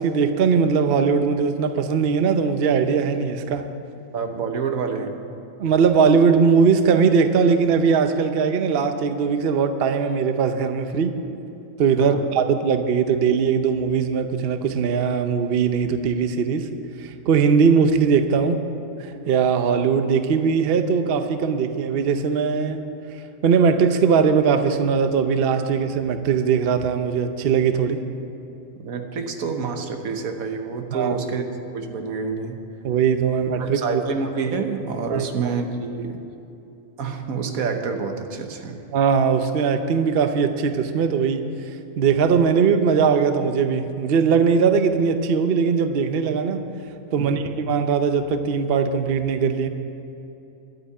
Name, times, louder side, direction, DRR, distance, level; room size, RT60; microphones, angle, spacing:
voice 1, 0.0-3.7 5.6-11.1 11.8-16.7 17.0-18.6 19.0-22.8 23.4-28.0 30.9-31.2 32.8-34.0 35.1-35.3 38.9-41.4 42.0-46.6 47.1-49.7, right 6 dB, 50° right, 8 dB, 0.8 m, -20 dB
voice 2, 4.1-5.2 12.0-12.5 28.8-32.6 33.6-36.2 37.0-38.8 47.2-47.4, right 5 dB, 90° right, 5 dB, 1.5 m, -28 dB
11.5 x 9.1 x 8.5 m, 2.9 s
omnidirectional pair, 1.4 m